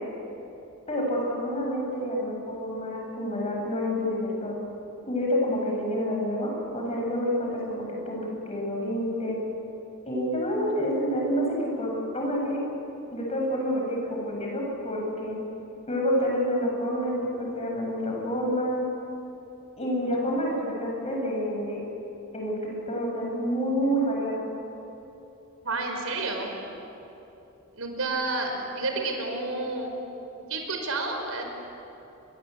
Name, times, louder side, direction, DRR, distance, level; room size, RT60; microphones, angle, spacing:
voice 1, 0.9-4.6 5.0-9.4 10.1-12.6 13.1-15.4 15.8-18.8 19.8-21.8 22.3-24.4, equal, 30° left, -1 dB, 7.9 m, -28 dB
voice 2, 25.6-26.5 27.7-29.9 30.5-31.4, right 3 dB, 80° right, 3 dB, 5.5 m, -30 dB
29.5 x 23.0 x 8.6 m, 2.9 s
head